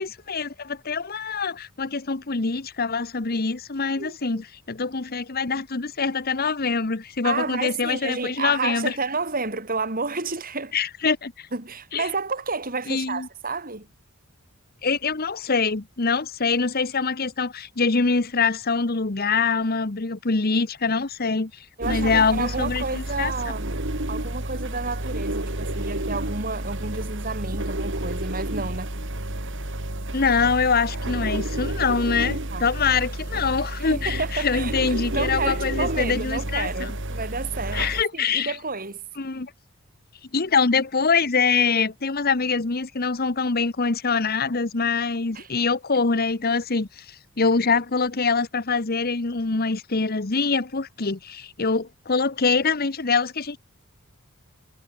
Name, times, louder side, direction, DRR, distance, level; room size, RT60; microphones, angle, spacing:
voice 1, 0.0-8.9 10.7-11.5 11.9-12.1 12.9-13.3 14.8-23.3 30.1-36.9 37.7-38.6 39.2-39.5 40.3-53.6, left 4 dB, 45° left, 1.1 m, -24 dB
voice 2, 4.0-4.4 7.2-10.8 11.5-13.9 21.8-23.7 24.1-28.9 32.2-32.7 33.8-39.0 45.3-45.5, right 4 dB, 40° right, 4.8 m, -30 dB
sound 1, 21.8-38.0, right 1 dB, 60° right, 3.9 m, -30 dB
head